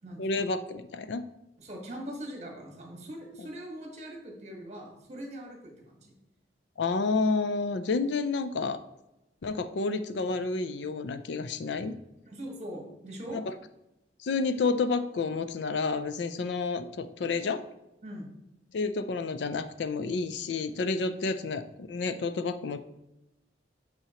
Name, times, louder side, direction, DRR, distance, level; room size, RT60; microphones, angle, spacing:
voice 1, 0.2-1.2 3.4-3.5 6.8-8.8 9.4-12.0 13.3-13.4 14.2-17.6 18.7-22.8, left 4 dB, 70° left, 11 dB, 0.4 m, -30 dB
voice 2, 1.6-6.1 12.2-13.4 18.0-18.3, equal, 35° right, 1 dB, 1.5 m, -41 dB
7.0 x 5.6 x 2.9 m, 0.89 s
head